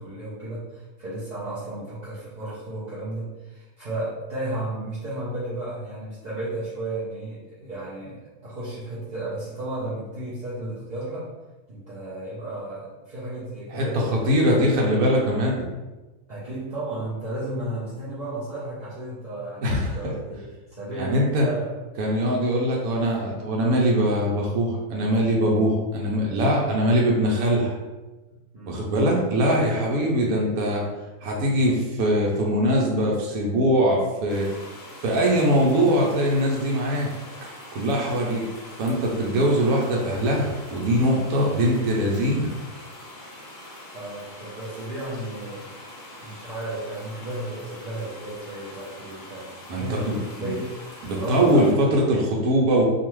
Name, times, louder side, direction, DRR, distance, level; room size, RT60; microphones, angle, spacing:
voice 1, 0.0-11.3 11.7-14.7 16.3-21.7 28.5-28.9 43.9-45.7 46.2-50.7 51.1-51.9, right 1 dB, 60° right, -10 dB, 0.4 m, -33 dB
voice 2, 13.7-15.6 19.6-20.0 20.9-21.5 22.0-27.7 28.7-30.8 31.2-34.5 35.0-37.1 37.4-37.5 37.7-38.5 38.8-42.5 49.7-50.5 51.0-52.8, equal, 80° right, -2 dB, 1.0 m, -22 dB
sound 1, 34.3-51.7, left 1 dB, 65° left, 0.4 m, -43 dB
2.6 x 2.4 x 3.0 m, 1.1 s
omnidirectional pair, 1.6 m